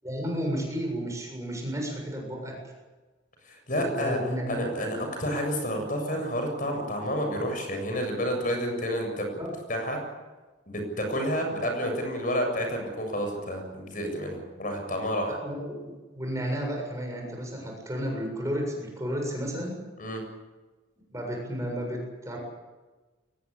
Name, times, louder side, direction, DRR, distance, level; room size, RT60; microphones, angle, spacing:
voice 1, 0.0-2.6 3.7-4.7 9.4-9.5 15.4-19.8 21.1-22.4, equal, 15° right, 1 dB, 7.3 m, -32 dB
voice 2, 3.5-4.2 4.5-9.3 9.7-10.0 10.7-15.4 20.0-20.2, equal, 45° left, 4 dB, 7.5 m, -30 dB
23.5 x 20.0 x 8.6 m, 1.2 s
head